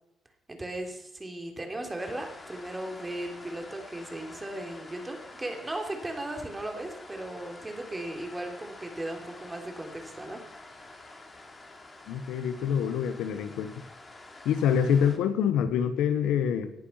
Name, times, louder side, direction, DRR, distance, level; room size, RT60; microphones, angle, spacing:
voice 1, 0.5-10.4, right 1 dB, 20° right, 3 dB, 3.6 m, -37 dB
sound 1, 2.0-15.2, left 2 dB, 25° left, 2.9 m, -48 dB
voice 2, 12.1-13.8 14.4-16.7, left 8 dB, 90° left, 10 dB, 1.3 m, -26 dB
18.0 x 10.5 x 5.9 m, 0.89 s
cardioid pair, 90°, 0 cm